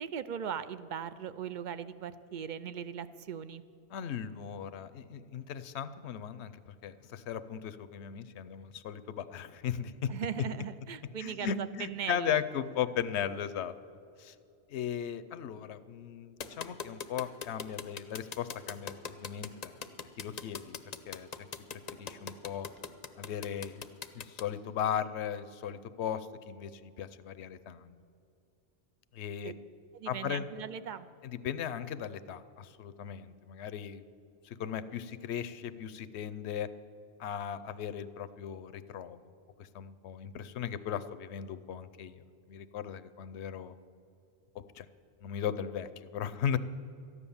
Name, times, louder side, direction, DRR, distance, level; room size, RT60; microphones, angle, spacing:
voice 1, 0.0-3.6 10.1-12.4 29.4-29.5 29.9-31.1, right 8 dB, 60° right, 13 dB, 0.5 m, -39 dB
voice 2, 3.9-10.4 11.2-13.7 14.2-14.3 14.7-19.7 20.2-20.8 21.1-21.3 21.7-22.7 23.2-23.8 24.1-28.0 29.1-29.5 30.1-30.4 31.2-34.1 34.4-36.7 37.2-39.2 39.6-43.7 44.5-44.9 45.2-46.6, left 9 dB, 70° left, 13 dB, 0.9 m, -37 dB
sound 1, 16.4-24.4, left 6 dB, 45° left, 0.6 m, -40 dB
13.5 x 9.9 x 7.1 m, 2.6 s
omnidirectional pair, 1.2 m